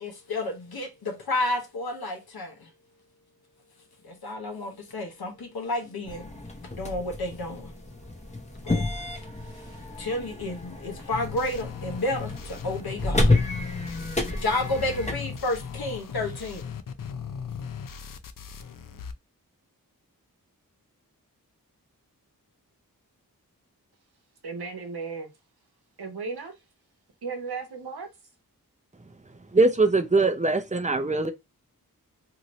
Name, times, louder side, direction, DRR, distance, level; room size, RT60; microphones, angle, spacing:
voice 1, 0.0-2.7 4.0-6.3 6.7-7.7 8.6-13.4 14.3-16.7, left 2 dB, 75° left, 1.0 m, -31 dB
sound 1, 6.1-16.0, left 2 dB, 20° left, 0.8 m, -30 dB
sound 2, 11.1-19.1, left 6 dB, 60° left, 0.5 m, -38 dB
voice 2, 24.4-25.3 26.0-26.6 27.2-28.1, right 4 dB, 85° right, 0.9 m, -35 dB
voice 3, 29.5-31.3, right 3 dB, 20° right, 0.6 m, -22 dB
2.9 x 2.6 x 3.0 m
wide cardioid pair, 50°, 37 cm